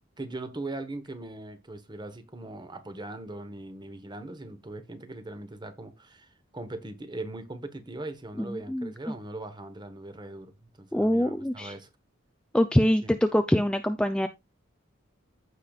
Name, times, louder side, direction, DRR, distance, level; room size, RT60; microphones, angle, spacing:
voice 1, 0.2-11.9 13.0-13.1, right 2 dB, 20° right, 1.1 m, -40 dB
voice 2, 8.4-8.9 10.9-11.7 12.5-14.3, equal, 5° left, 0.4 m, -24 dB
15.0 x 5.1 x 2.3 m
head